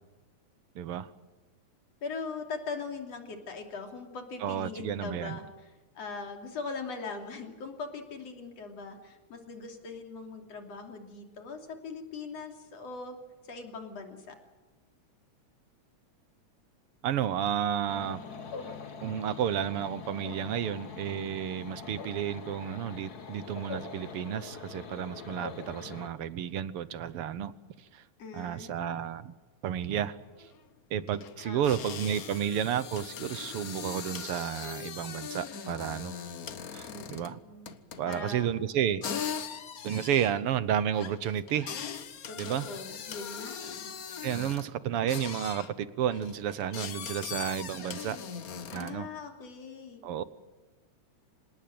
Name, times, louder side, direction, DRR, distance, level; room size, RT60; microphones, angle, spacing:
voice 1, 0.7-1.1 4.4-5.4 17.0-18.2 19.0-27.5 27.8-28.0 28.3-29.3 29.6-30.5 30.9-36.2 36.7-37.4 38.0-39.4 39.8-41.7 42.4-42.7 44.2-48.2 48.7-49.1 50.0-50.2, right 9 dB, 65° right, 15 dB, 1.5 m, -32 dB
voice 2, 2.0-13.2 13.4-14.4 28.2-29.1 31.5-31.9 36.9-37.7 38.1-38.6 42.3-43.9 48.7-50.0, left 4 dB, 60° left, 4 dB, 3.9 m, -41 dB
sound 1, 17.9-26.1, left 5 dB, 40° left, 1.7 m, -43 dB
sound 2, 30.1-30.2 30.4-30.6 31.1-37.4 37.7-38.3 39.0-44.7 45.1-45.7 46.1-49.1, left 7 dB, 80° left, 0.8 m, -40 dB
26.5 x 19.0 x 7.8 m, 1.2 s
omnidirectional pair, 3.3 m